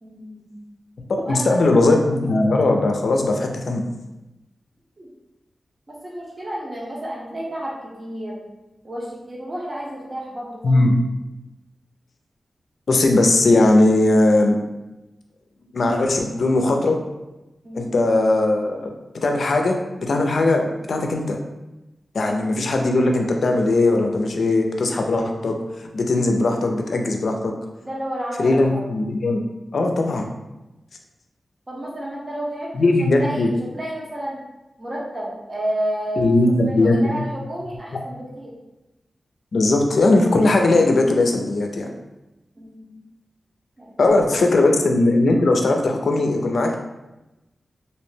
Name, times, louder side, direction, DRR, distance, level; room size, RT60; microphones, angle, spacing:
voice 1, 0.0-0.6 1.2-1.6 5.0-5.1 5.9-8.4 8.8-10.7 17.6-17.9 27.8-28.8 29.8-30.1 31.7-34.4 34.8-38.5 42.6-43.0 43.8-44.6, right 1 dB, 40° right, -4 dB, 0.9 m, -31 dB
voice 2, 1.1-3.8 10.6-10.9 12.9-14.6 15.7-17.0 17.7-18.9 19.2-20.6 20.9-21.4 22.1-27.5 28.4-29.4 29.7-30.3 32.7-33.5 36.2-37.3 39.5-41.9 44.0-46.7, left 2 dB, 75° left, 3 dB, 0.4 m, -19 dB
2.6 x 2.1 x 3.1 m, 1.0 s
cardioid pair, 50°, 0 cm